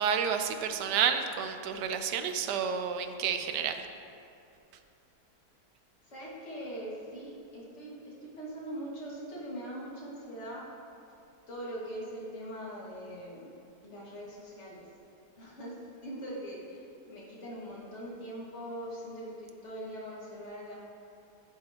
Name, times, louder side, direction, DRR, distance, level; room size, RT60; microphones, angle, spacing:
voice 1, 0.0-3.9, right 7 dB, 90° right, 8 dB, 1.2 m, -30 dB
voice 2, 6.1-10.7 11.5-13.5 13.8-14.9 15.4-20.7, equal, 45° left, -6 dB, 2.2 m, -42 dB
11.0 x 8.7 x 2.9 m, 2.6 s
omnidirectional pair, 1.7 m